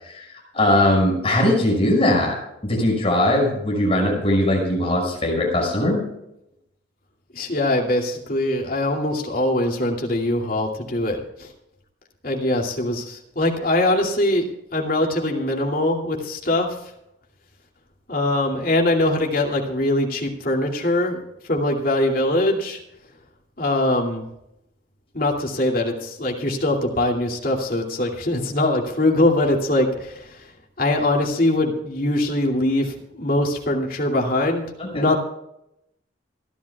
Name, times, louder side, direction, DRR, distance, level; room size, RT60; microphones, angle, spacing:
voice 1, 0.1-2.4 2.6-6.0 34.8-35.1, left 1 dB, 30° left, -1 dB, 5.8 m, -20 dB
voice 2, 7.3-11.5 12.2-16.8 18.1-21.2 21.4-22.8 23.6-24.3 25.1-30.5 30.8-34.7 34.9-35.2, left 1 dB, 45° left, 0 dB, 2.5 m, -22 dB
28.0 x 11.5 x 2.3 m, 0.81 s
head